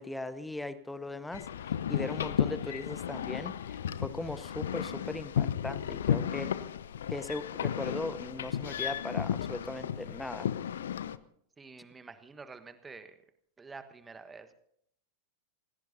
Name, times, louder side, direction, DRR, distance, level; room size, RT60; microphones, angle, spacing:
voice 1, 0.0-6.5 7.1-10.5, left 2 dB, 5° left, 14 dB, 0.9 m, -39 dB
sound 1, 1.3-11.2, left 9 dB, 65° left, 0.6 m, -34 dB
voice 2, 11.6-13.2 13.6-14.6, right 4 dB, 15° right, 9 dB, 1.3 m, -48 dB
27.5 x 17.0 x 2.7 m, 0.70 s
figure-of-eight pair, 90°, 0 cm